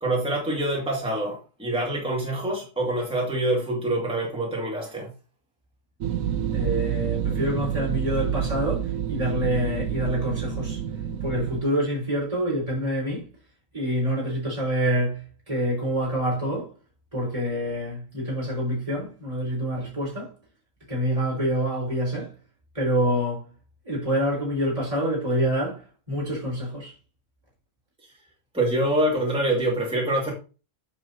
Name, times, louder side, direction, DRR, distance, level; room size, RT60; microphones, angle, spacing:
voice 1, 0.0-5.1 28.5-30.3, right 1 dB, 5° right, 2.2 m, -25 dB
sound 1, 6.0-11.6, right 9 dB, 85° right, 1.1 m, -28 dB
voice 2, 6.5-10.8 11.2-13.3 13.7-16.7 17.1-20.3 20.9-22.3 22.7-23.5 23.8-26.9, equal, 25° right, 4.3 m, -27 dB
9.2 x 6.1 x 2.8 m
omnidirectional pair, 1.3 m